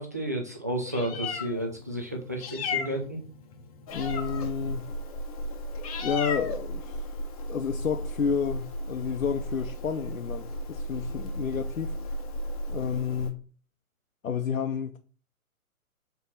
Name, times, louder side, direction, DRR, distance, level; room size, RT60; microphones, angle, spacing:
voice 1, 0.0-3.2, right 1 dB, 15° right, 0.4 m, -32 dB
Meow, 0.7-13.3, left 1 dB, 25° left, 0.9 m, -35 dB
voice 2, 3.9-4.9 6.0-7.2 7.5-11.9 12.7-13.4 14.2-15.0, left 7 dB, 70° left, 0.8 m, -30 dB
6.9 x 4.2 x 4.1 m
figure-of-eight pair, 130°, 43 cm